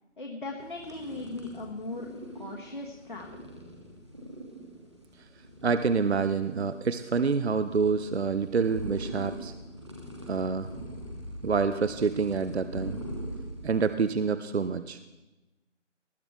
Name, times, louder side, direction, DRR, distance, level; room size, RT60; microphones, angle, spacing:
voice 1, 0.2-2.1 2.4-3.5, left 2 dB, 45° left, 0 dB, 1.4 m, -38 dB
sound 1, 0.6-14.0, equal, 25° right, 1.1 m, -42 dB
voice 2, 5.6-9.5 10.3-10.7 11.4-13.0 13.6-15.0, right 5 dB, 60° right, 12 dB, 0.6 m, -27 dB
19.5 x 10.5 x 3.6 m, 1.1 s
figure-of-eight pair, 175°, 36 cm